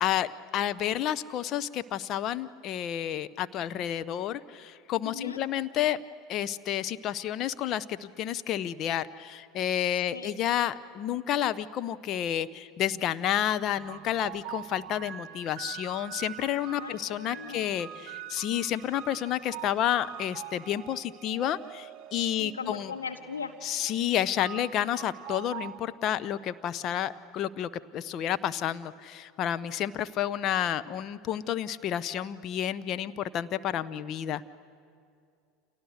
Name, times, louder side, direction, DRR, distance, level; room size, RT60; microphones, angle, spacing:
voice 1, 0.0-6.0 6.3-22.9 23.6-34.5, left 11 dB, 45° left, 13 dB, 0.9 m, -30 dB
voice 2, 5.0-5.4 10.1-10.3 16.7-17.7 22.4-23.5, left 6 dB, 85° left, 3 dB, 2.0 m, -38 dB
sound 1, 13.7-25.8, right 10 dB, 50° right, 1.1 m, -44 dB
30.0 x 27.5 x 6.6 m, 2.4 s
hypercardioid pair, 80°, 0 cm